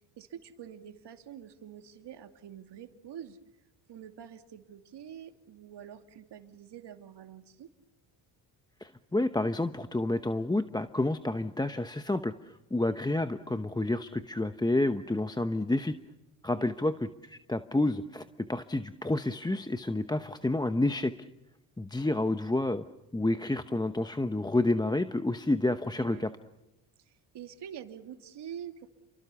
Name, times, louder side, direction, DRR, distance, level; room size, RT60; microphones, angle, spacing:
voice 1, 0.2-3.4 3.9-7.7 16.5-16.8 25.9-26.3 27.0-28.9, right 9 dB, 60° right, 7 dB, 2.6 m, -46 dB
voice 2, 8.8-15.9 16.4-16.9 17.2-21.1 21.8-22.8 23.1-26.3, left 2 dB, 10° left, 10 dB, 1.0 m, -29 dB
30.0 x 23.5 x 7.1 m, 0.97 s
supercardioid pair, 80°, 46 cm